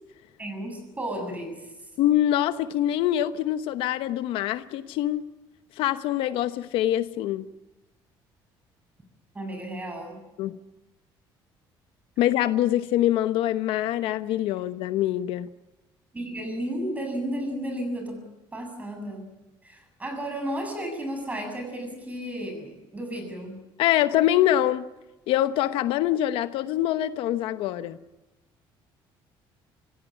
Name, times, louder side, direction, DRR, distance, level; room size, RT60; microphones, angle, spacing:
voice 1, 0.4-1.7 9.3-10.2 16.1-18.2 18.5-19.2 19.6-23.6, right 1 dB, 15° right, 7.2 m, -33 dB
voice 2, 2.0-5.2 5.8-7.5 10.4-10.6 12.2-15.5 23.8-24.8 25.3-28.0, left 12 dB, 80° left, 1.0 m, -24 dB
24.5 x 16.5 x 10.0 m
cardioid pair, 125°, 9 cm